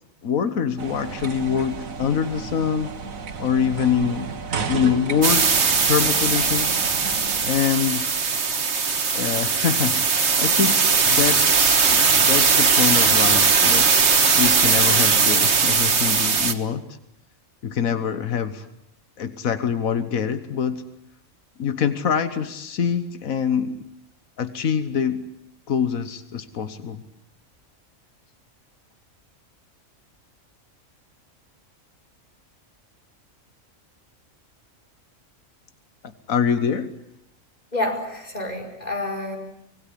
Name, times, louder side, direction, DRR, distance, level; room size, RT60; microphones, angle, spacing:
voice 1, 0.2-2.9 3.4-4.3 4.7-6.8 7.4-8.1 9.1-10.8 11.0-11.5 11.9-13.9 14.4-16.8 17.6-18.6 19.2-20.8 21.6-23.8 24.4-25.2 25.7-27.0 36.0-36.9, left 7 dB, 90° left, 11 dB, 1.6 m, -24 dB
sound 1, 0.8-7.8, right 5 dB, 80° right, 2.0 m, -33 dB
sound 2, 5.2-16.5, right 5 dB, 55° right, 1.8 m, -19 dB
voice 2, 37.7-39.4, left 2 dB, 30° left, 2 dB, 5.0 m, -28 dB
25.0 x 20.0 x 10.0 m, 0.80 s
omnidirectional pair, 1.4 m